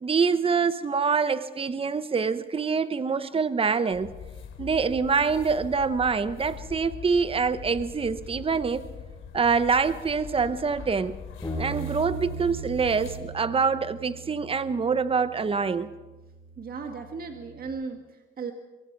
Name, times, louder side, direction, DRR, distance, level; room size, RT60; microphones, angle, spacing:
voice 1, 0.0-4.1 4.6-8.8 9.3-11.2 11.6-15.9, right 5 dB, 30° right, 1.0 m, -25 dB
sound 1, 3.9-13.2, left 7 dB, 80° left, 3.4 m, -42 dB
Bass guitar, 11.4-17.7, right 3 dB, 20° left, 5.2 m, -39 dB
voice 2, 16.6-18.5, right 4 dB, 50° right, 1.8 m, -36 dB
24.0 x 23.0 x 4.7 m
cardioid pair, 90°, 20 cm